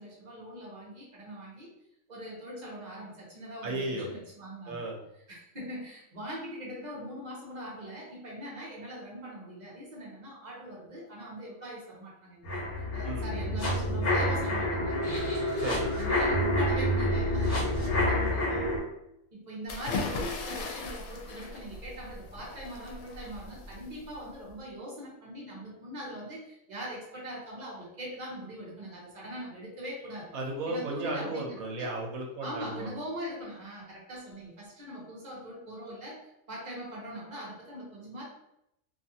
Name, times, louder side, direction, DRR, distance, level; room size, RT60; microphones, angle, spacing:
voice 1, 0.0-1.7 2.1-4.8 5.3-15.2 15.9-18.7 19.3-30.3 30.7-31.9 32.4-38.2, equal, 40° right, -5 dB, 0.9 m, -42 dB
voice 2, 3.6-4.1 4.7-5.0 13.0-13.3 15.6-15.9 30.3-32.9, right 2 dB, 85° right, 0 dB, 1.1 m, -34 dB
sound 1, 12.4-18.8, left 1 dB, 45° left, 1.2 m, -28 dB
sound 2, 19.7-24.5, left 3 dB, 85° left, 1.0 m, -38 dB
2.7 x 2.4 x 2.7 m, 0.81 s
omnidirectional pair, 1.4 m